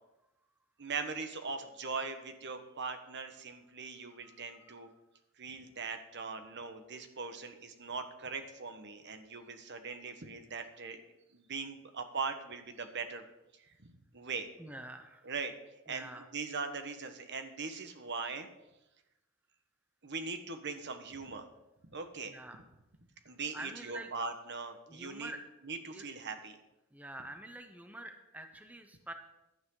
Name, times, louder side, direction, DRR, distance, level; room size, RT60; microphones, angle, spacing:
voice 1, 0.8-4.9 5.4-11.0 11.3-13.2 13.8-14.5 15.2-15.5 15.8-18.5 20.0-21.5 21.9-22.3 23.2-25.3 25.6-26.6, right 4 dB, 55° right, 8 dB, 1.3 m, -40 dB
voice 2, 4.2-4.7 14.6-15.3 15.9-16.2 22.3-22.6 23.5-24.1 24.9-25.4 25.9-26.1 26.9-29.1, right 1 dB, 5° right, 6 dB, 0.8 m, -47 dB
15.5 x 11.5 x 3.9 m, 0.95 s
head